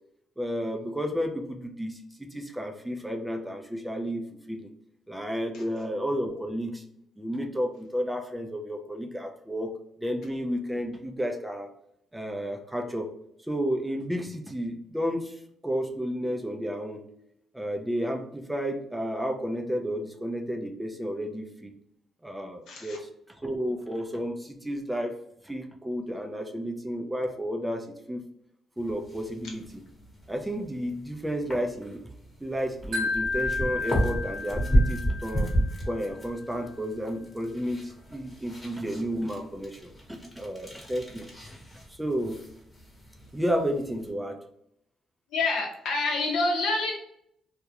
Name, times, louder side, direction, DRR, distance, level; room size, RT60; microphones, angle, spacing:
voice 1, 0.4-4.7 5.1-6.8 7.2-9.7 10.0-11.7 12.1-13.1 13.5-17.1 17.5-21.7 22.2-23.1 23.4-25.2 25.4-28.3 28.8-29.8 30.3-32.0 32.4-35.5 35.9-41.3 41.9-42.4 43.3-44.4, equal, 10° right, 4 dB, 0.4 m, -32 dB
voice 2, 22.7-23.0 45.3-46.9, left 3 dB, 80° left, 0 dB, 0.7 m, -27 dB
sound 1, 28.8-44.1, equal, 15° left, 1.0 m, -33 dB
Wind chime, 32.9-36.0, left 3 dB, 75° right, 0.6 m, -32 dB
2.3 x 2.1 x 2.8 m, 0.74 s
cardioid pair, 90°, 0 cm